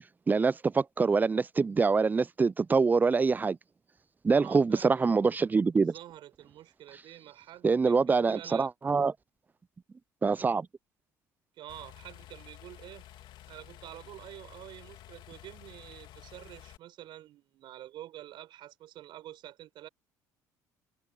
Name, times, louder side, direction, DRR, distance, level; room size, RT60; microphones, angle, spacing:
voice 1, 0.3-3.6 4.2-5.9 7.6-9.1 10.2-10.7, right 4 dB, 20° right, 0.4 m, -25 dB
voice 2, 4.3-5.0 5.8-8.7 11.5-13.0 13.5-19.9, right 13 dB, 65° right, 4.8 m, -48 dB
sound 1, 11.7-16.8, left 13 dB, 65° left, 3.1 m, -51 dB
supercardioid pair, 75°, 9 cm